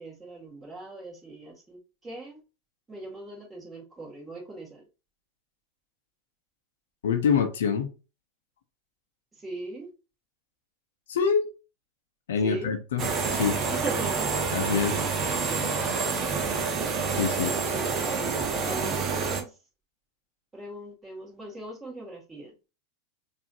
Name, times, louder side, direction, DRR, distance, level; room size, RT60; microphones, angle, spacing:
voice 1, 0.0-2.4 2.9-4.8 9.3-9.9 12.4-12.7 13.7-14.3 14.7-15.8 17.5-19.6 20.5-22.5, right 2 dB, 15° right, -3 dB, 2.2 m, -40 dB
voice 2, 7.0-7.9 11.1-11.5 12.3-13.0 13.3-13.6 14.5-15.0 17.2-17.5, left 6 dB, 70° left, 7 dB, 0.7 m, -25 dB
sound 1, 13.0-19.4, right 5 dB, 35° right, 0.9 m, -28 dB
4.7 x 2.8 x 2.7 m, 0.31 s
hypercardioid pair, 95°, 0 cm